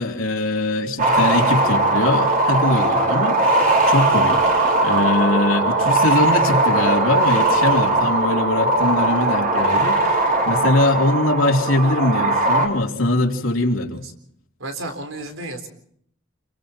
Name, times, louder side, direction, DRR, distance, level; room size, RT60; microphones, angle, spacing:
voice 1, 0.0-4.5 4.8-14.0, left 1 dB, 85° left, 1 dB, 3.1 m, -22 dB
sound 1, 1.0-12.7, right 2 dB, 45° right, 3.8 m, -19 dB
voice 2, 14.6-15.7, right 2 dB, 80° right, 6 dB, 3.8 m, -32 dB
28.0 x 23.5 x 4.4 m, 0.68 s
head